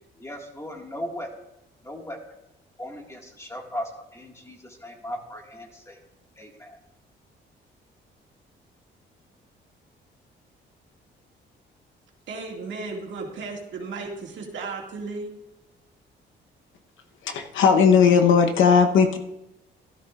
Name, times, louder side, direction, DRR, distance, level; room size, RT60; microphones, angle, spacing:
voice 1, 0.2-1.3 1.8-2.2 2.8-6.0 6.4-6.8, equal, 15° left, 2.0 m, -37 dB
voice 2, 12.3-15.3, right 3 dB, 70° right, 2.2 m, -34 dB
voice 3, 17.2-19.2, left 6 dB, 80° left, 1.1 m, -17 dB
13.0 x 12.0 x 2.5 m
cardioid pair, 90°, 20 cm